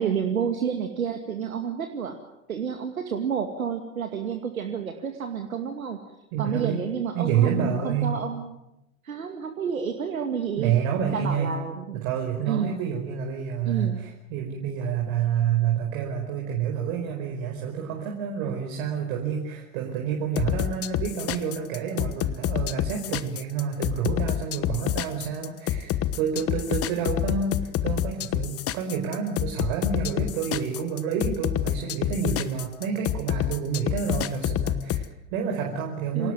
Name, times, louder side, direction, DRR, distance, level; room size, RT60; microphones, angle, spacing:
voice 1, 0.0-2.2 2.5-6.0 6.4-8.5 9.0-10.7 11.1-12.0 12.5-12.8 13.7-14.0 36.1-36.3, right 7 dB, 90° right, 5 dB, 2.4 m, -29 dB
voice 2, 6.3-6.8 7.1-8.2 10.6-11.5 11.9-36.3, right 7 dB, 60° right, 2 dB, 4.9 m, -28 dB
sound 1, 20.3-35.0, left 11 dB, 35° left, 1.3 m, -27 dB
27.5 x 17.5 x 9.3 m, 0.90 s
hypercardioid pair, 95°, 40 cm